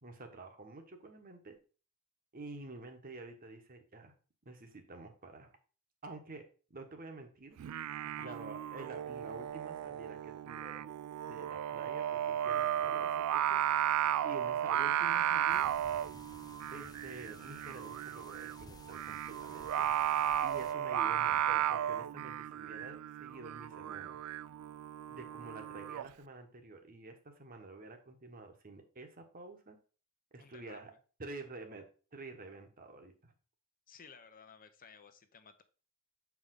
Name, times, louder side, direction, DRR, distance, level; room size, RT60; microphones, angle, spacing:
voice 1, 0.0-1.6 2.3-4.1 4.4-5.5 6.0-6.4 6.7-7.6 8.2-10.9 11.3-13.6 14.2-15.7 16.7-19.9 20.4-24.2 25.1-29.8 30.3-30.9 31.2-31.8 32.1-33.3, right 2 dB, 40° right, 5 dB, 1.3 m, -49 dB
Singing, 7.6-26.1, right 11 dB, 85° right, 0.3 m, -34 dB
voice 2, 8.0-8.4 14.0-14.4 30.4-31.0 33.9-35.6, left 6 dB, 40° left, 9 dB, 0.8 m, -56 dB
sound 1, 15.5-20.7, left 4 dB, 15° left, 0.3 m, -56 dB
7.0 x 4.8 x 3.8 m, 0.37 s
head